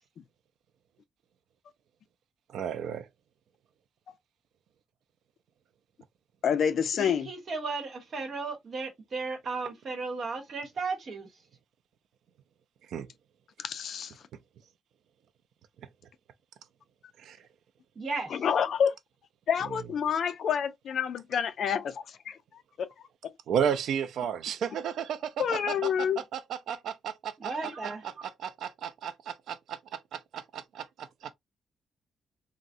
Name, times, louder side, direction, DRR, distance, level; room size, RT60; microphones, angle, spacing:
voice 1, 2.5-3.1 12.9-13.1 17.2-17.5 23.5-26.1 26.3-31.3, right 8 dB, 75° right, 0.3 m, -34 dB
voice 2, 6.4-7.3 13.6-14.1 18.3-19.0 19.5-22.4 22.8-22.9 25.4-26.2, left 7 dB, 55° left, 0.3 m, -28 dB
voice 3, 7.0-11.3 18.0-18.3 27.4-28.2, right 4 dB, 40° right, 1.0 m, -35 dB
3.5 x 2.0 x 2.5 m
wide cardioid pair, 165°, 0 cm